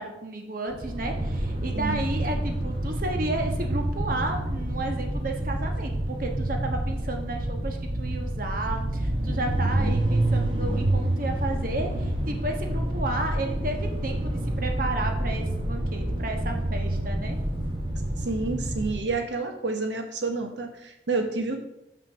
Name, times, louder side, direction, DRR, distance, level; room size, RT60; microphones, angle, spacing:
voice 1, 0.0-17.4, right 2 dB, 50° right, 3 dB, 1.2 m, -32 dB
sound 1, 0.7-19.1, right 1 dB, 30° right, 1.2 m, -28 dB
voice 2, 18.2-21.6, right 3 dB, 90° right, 4 dB, 1.0 m, -29 dB
7.5 x 5.9 x 6.0 m, 0.85 s
head